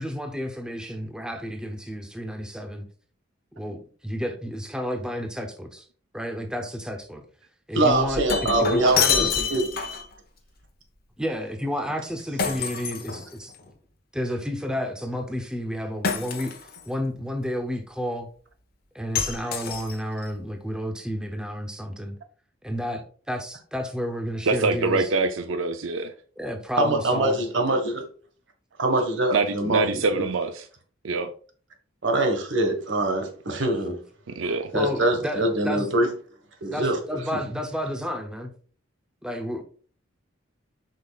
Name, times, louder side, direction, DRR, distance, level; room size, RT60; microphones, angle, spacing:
voice 1, 0.0-2.8 3.6-5.9 6.1-7.2 7.7-8.2 8.6-9.4 11.2-13.5 14.1-16.5 16.9-18.3 18.9-22.2 22.6-25.1 26.4-27.4 34.7-35.9 36.7-38.5 39.2-39.6, equal, 5° right, 0.7 m, -31 dB
voice 2, 7.7-9.7 19.4-19.5 26.7-28.0 28.8-29.8 30.1-30.2 32.0-34.0 34.7-36.1 36.6-37.0, right 2 dB, 70° right, 1.5 m, -23 dB
Shatter, 7.9-10.1 12.4-13.7 16.0-16.8 19.2-20.3, left 6 dB, 50° left, 1.0 m, -27 dB
voice 3, 24.5-26.1 29.3-30.6 31.0-31.3 34.3-34.7, right 3 dB, 85° right, 0.5 m, -25 dB
7.5 x 5.4 x 2.4 m
head